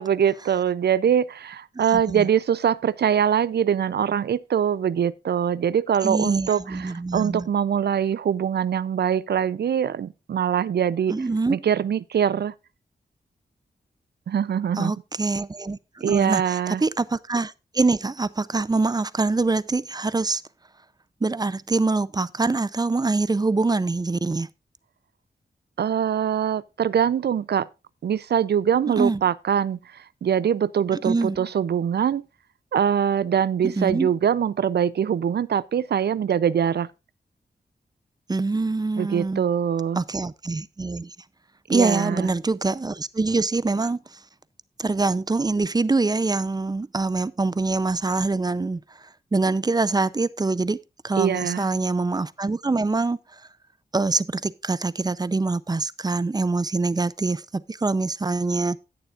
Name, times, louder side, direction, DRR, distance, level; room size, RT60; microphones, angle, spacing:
voice 1, 0.0-12.5 14.3-14.9 16.0-16.8 25.8-27.7 28.0-32.3 32.7-36.9 39.0-40.0 41.7-42.3 51.2-51.7, right 8 dB, 75° right, 0.5 m, -23 dB
voice 2, 1.9-2.3 6.0-7.5 11.1-11.6 14.8-20.4 21.2-24.5 29.0-29.2 31.0-31.4 33.6-34.1 38.3-39.5 40.0-41.1 41.7-44.0 44.8-48.8 49.3-50.8 51.0-53.2 53.9-58.8, right 3 dB, 25° right, 0.5 m, -24 dB
17.0 x 6.9 x 2.4 m
wide cardioid pair, 100°, 17 cm